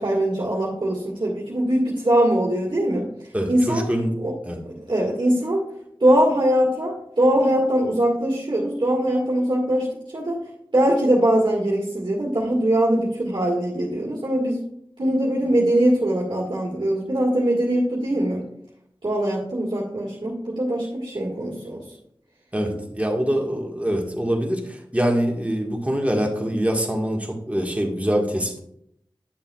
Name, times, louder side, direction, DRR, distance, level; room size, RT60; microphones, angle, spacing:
voice 1, 0.0-3.0 3.5-3.8 4.2-4.3 4.9-5.6 6.0-9.9 10.1-10.4 10.7-14.6 15.0-18.4 19.0-21.8, right 1 dB, 55° right, -5 dB, 1.8 m, -21 dB
voice 2, 3.3-4.1 4.4-4.6 22.5-28.6, equal, 15° right, 1 dB, 1.5 m, -24 dB
10.0 x 6.8 x 2.3 m, 0.73 s
wide cardioid pair, 45°, 9 cm